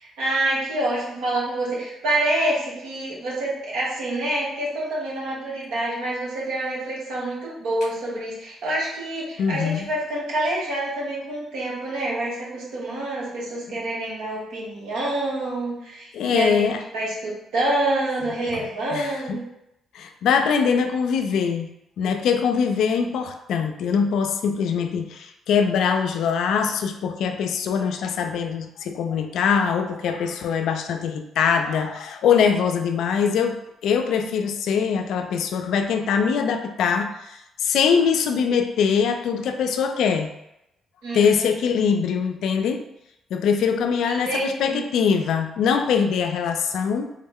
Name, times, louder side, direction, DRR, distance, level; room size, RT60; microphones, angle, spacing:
voice 1, 0.0-19.4 41.0-41.5 44.0-44.8, right 1 dB, 90° right, -5 dB, 1.1 m, -27 dB
voice 2, 9.4-9.9 13.7-13.8 16.1-16.8 18.5-18.6 18.9-19.4 19.9-21.7 22.0-33.5 33.8-40.3 41.1-42.8 43.3-47.1, left 6 dB, 75° left, 6 dB, 0.3 m, -22 dB
3.6 x 2.1 x 3.5 m, 0.84 s
cardioid pair, 90°, 0 cm